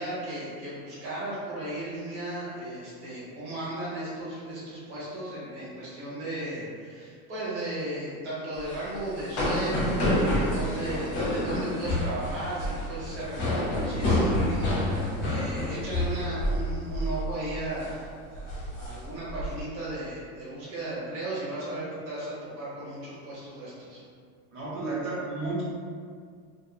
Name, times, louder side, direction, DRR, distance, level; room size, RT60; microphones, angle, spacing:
voice 1, 0.0-24.0, right 1 dB, 35° right, -9 dB, 0.8 m, -35 dB
sound 1, 8.6-16.7 16.9-17.2 17.6-17.9 18.3-19.5, left 1 dB, 40° left, 0.9 m, -28 dB
voice 2, 24.5-25.6, right 3 dB, 60° right, -7 dB, 1.1 m, -32 dB
2.4 x 2.4 x 2.5 m, 2.1 s
supercardioid pair, 160°, 43 cm